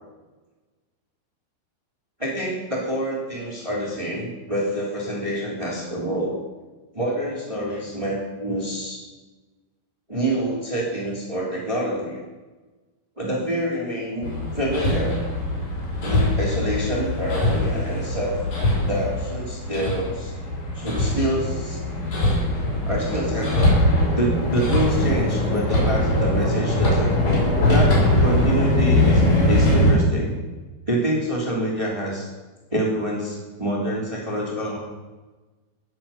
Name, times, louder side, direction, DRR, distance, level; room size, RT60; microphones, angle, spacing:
voice 1, 2.2-6.4 6.9-9.0 10.1-12.2 13.2-15.2 16.0-18.4 18.8-20.3 20.7-21.8 22.8-23.7 24.1-27.2 27.7-30.3 30.9-32.3 32.7-34.8, right 1 dB, 10° right, -3 dB, 1.8 m, -27 dB
Hammer, 14.2-29.9, left 1 dB, 45° left, 7.1 m, -21 dB
18.5 x 7.5 x 7.2 m, 1.2 s
omnidirectional pair, 5.8 m